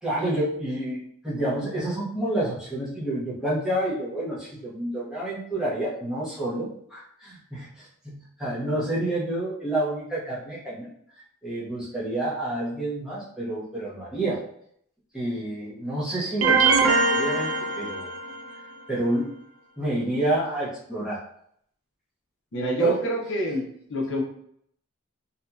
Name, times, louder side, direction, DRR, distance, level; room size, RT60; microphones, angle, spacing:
voice 1, 0.0-10.9 11.4-14.4 15.1-18.1 18.9-19.3 19.8-21.2 22.8-23.0, right 1 dB, 5° right, -7 dB, 0.7 m, -29 dB
sound 1, 16.4-18.5, right 3 dB, 65° right, 0.4 m, -22 dB
voice 2, 22.5-24.2, equal, 55° left, -1 dB, 0.6 m, -28 dB
2.8 x 2.6 x 2.2 m, 0.68 s
head